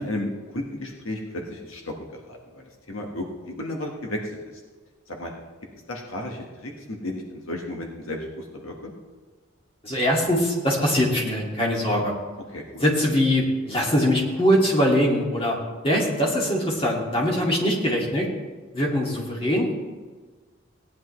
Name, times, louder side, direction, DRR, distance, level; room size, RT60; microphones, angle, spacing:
voice 1, 0.0-1.9 2.3-4.4 5.1-5.3 5.9-8.9 11.8-12.0 12.5-12.8, left 1 dB, 70° left, 1 dB, 1.5 m, -33 dB
voice 2, 9.8-12.1 12.8-15.6 15.8-18.3 18.7-19.7, equal, 25° left, -2 dB, 2.2 m, -22 dB
17.5 x 10.5 x 3.2 m, 1.4 s
head